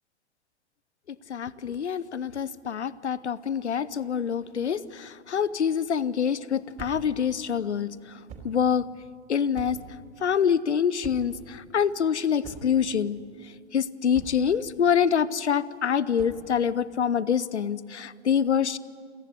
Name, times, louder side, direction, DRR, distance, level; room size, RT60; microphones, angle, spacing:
voice 1, 1.1-7.9 8.4-8.9 9.3-9.8 10.2-13.2 13.7-18.8, left 7 dB, 80° left, 19 dB, 0.7 m, -26 dB
sound 1, 6.8-7.2 8.3-8.6 9.5-10.0 11.0-11.4 12.4-12.9 14.1-14.5 16.1-16.5, right 5 dB, 25° right, 3.1 m, -43 dB
28.5 x 10.5 x 9.7 m, 2.2 s
figure-of-eight pair, 100°, 34 cm